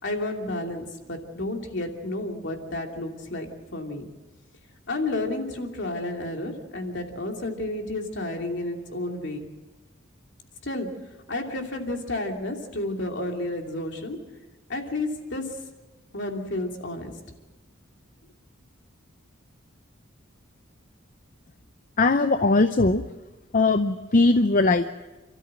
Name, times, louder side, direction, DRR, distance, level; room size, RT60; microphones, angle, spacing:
voice 1, 0.0-4.1 4.9-9.4 10.6-10.9 11.3-14.2 14.7-15.5 16.1-17.1, left 2 dB, 60° left, 3 dB, 2.9 m, -31 dB
voice 2, 22.0-23.0 23.5-24.9, left 3 dB, 40° left, 9 dB, 0.6 m, -20 dB
29.0 x 13.5 x 7.8 m, 1.2 s
head